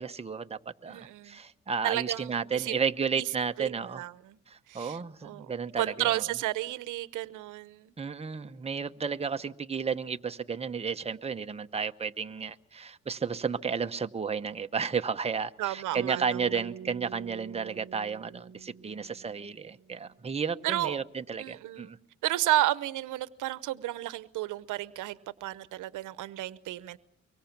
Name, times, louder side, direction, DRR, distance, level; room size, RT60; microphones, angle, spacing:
voice 1, 0.0-4.0 4.5-6.2 8.0-22.0, right 6 dB, 20° right, 0.9 m, -33 dB
voice 2, 0.9-1.4 1.8-2.3 2.5-2.7 3.2-3.3 3.6-4.4 4.7-5.5 5.8-7.9 15.6-16.4 20.6-21.0 21.4-22.0 22.2-27.0, right 15 dB, 85° right, 0.8 m, -32 dB
sound 1, 15.9-20.2, right 9 dB, 55° right, 0.8 m, -45 dB
24.0 x 23.0 x 5.9 m
cardioid pair, 90°, 30 cm